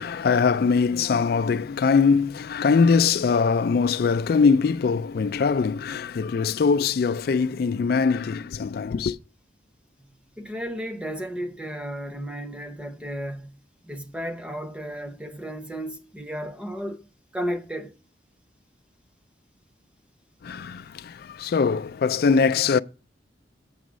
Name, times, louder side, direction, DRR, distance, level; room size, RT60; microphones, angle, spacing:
voice 1, 0.0-9.2 20.4-22.8, left 5 dB, 55° left, 0.3 m, -22 dB
voice 2, 10.0-13.6 13.8-17.1 17.3-17.9, equal, 5° right, 0.8 m, -34 dB
7.8 x 6.3 x 6.1 m
head